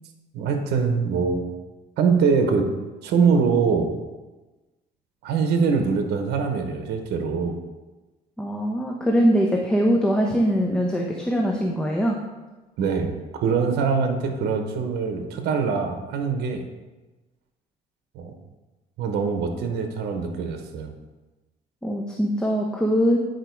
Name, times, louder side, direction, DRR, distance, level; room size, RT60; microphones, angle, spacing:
voice 1, 0.3-1.4 2.0-2.7 3.0-4.0 5.2-7.6 12.8-16.6 18.1-18.3 19.0-20.9, right 5 dB, 75° right, 5 dB, 1.0 m, -23 dB
voice 2, 8.4-12.1 21.8-23.2, equal, 5° left, -1 dB, 0.8 m, -22 dB
9.1 x 4.6 x 4.6 m, 1.2 s
cardioid pair, 110°, 17 cm